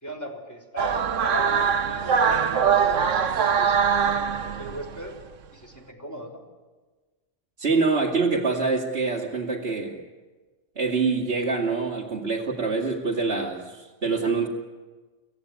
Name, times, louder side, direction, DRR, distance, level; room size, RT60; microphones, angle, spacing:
voice 1, 0.0-5.1 5.5-6.4, equal, 15° left, -1 dB, 4.1 m, -38 dB
sound 1, 0.8-5.1, right 7 dB, 90° right, 1.3 m, -22 dB
voice 2, 7.6-10.0 10.8-14.5, right 4 dB, 55° right, -3 dB, 2.5 m, -25 dB
26.0 x 17.0 x 9.6 m, 1.3 s
omnidirectional pair, 1.3 m